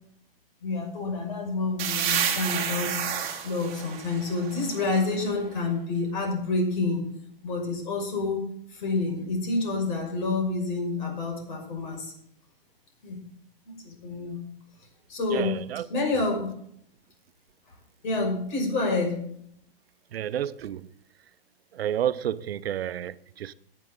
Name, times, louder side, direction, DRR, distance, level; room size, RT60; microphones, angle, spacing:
voice 1, 0.6-3.0 3.4-7.0 7.4-8.5 8.7-12.1 13.0-13.2 13.8-14.4 15.1-16.5 18.0-19.2, left 3 dB, 55° left, 5.8 m, -28 dB
sound 1, 1.8-5.4, right 8 dB, 30° right, 2.3 m, -30 dB
voice 2, 15.3-15.9 20.1-20.9 21.7-23.5, right 10 dB, 90° right, 0.7 m, -30 dB
17.0 x 9.1 x 3.8 m
hypercardioid pair, 170°, 30 cm